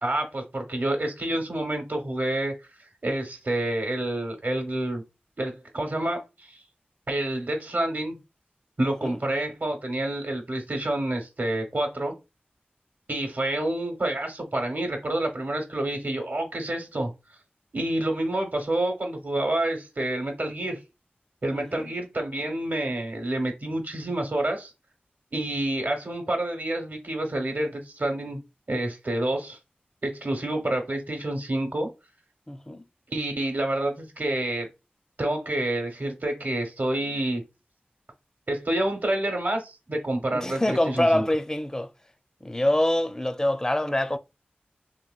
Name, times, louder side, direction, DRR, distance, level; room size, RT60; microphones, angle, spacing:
voice 1, 0.0-2.5 3.0-5.0 5.4-6.6 7.1-8.2 8.8-12.1 13.1-17.1 17.7-20.8 21.4-24.7 25.3-28.4 28.7-29.6 30.0-31.9 33.1-34.7 35.2-37.4 38.5-41.3, right 1 dB, 60° right, 0.9 m, -28 dB
voice 2, 8.8-9.2 21.5-21.9 32.5-32.8 40.3-41.9 42.4-44.2, left 1 dB, 15° left, 0.4 m, -25 dB
2.9 x 2.9 x 2.3 m
cardioid pair, 40°, 4 cm